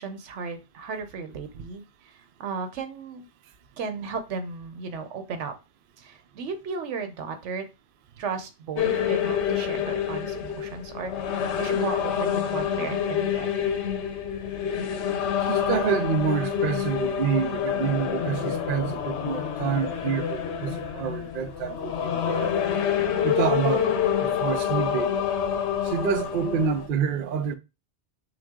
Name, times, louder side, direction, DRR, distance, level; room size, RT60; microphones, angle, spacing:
voice 1, 0.0-3.2 3.8-5.5 6.0-7.7 8.2-13.7, right 5 dB, 90° right, 1.1 m, -35 dB
sound 1, 8.8-26.9, left 8 dB, 80° left, 0.9 m, -27 dB
voice 2, 15.4-22.5 23.2-23.9 24.2-25.2 25.8-27.6, right 7 dB, 60° right, 0.7 m, -27 dB
5.9 x 2.3 x 3.6 m
omnidirectional pair, 1.2 m